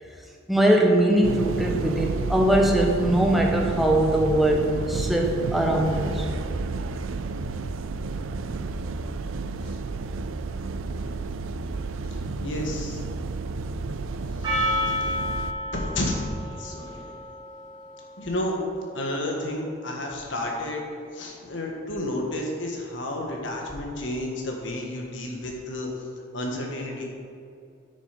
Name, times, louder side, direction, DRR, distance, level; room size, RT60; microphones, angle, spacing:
voice 1, 0.5-6.3, right 1 dB, ahead, 0 dB, 1.0 m, -21 dB
sound 1, 1.2-15.5, right 3 dB, 90° right, 0.4 m, -31 dB
voice 2, 12.4-13.2 14.4-15.2 15.7-16.2 16.6-17.0 18.2-18.6 18.9-20.9 21.1-25.9 26.3-27.0, left 1 dB, 70° left, 0 dB, 1.6 m, -31 dB
Percussion, 14.4-19.0, left 1 dB, 20° right, 2.0 m, -31 dB
9.1 x 6.6 x 5.2 m, 2.4 s
head